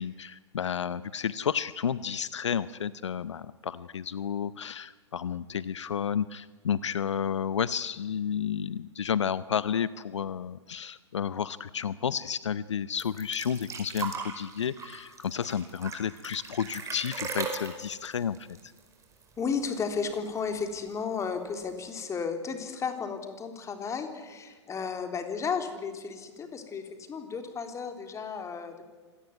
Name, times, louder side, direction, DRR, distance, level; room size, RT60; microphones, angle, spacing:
voice 1, 0.0-18.4, left 8 dB, 75° left, 17 dB, 0.7 m, -31 dB
sound 1, 13.0-19.4 19.7-19.8 20.1-20.8 21.6-21.7, right 5 dB, 20° right, 5.1 m, -38 dB
voice 2, 19.4-28.8, left 5 dB, 20° left, 6 dB, 3.4 m, -33 dB
26.0 x 18.5 x 9.6 m, 1.4 s
figure-of-eight pair, 105°, 15 cm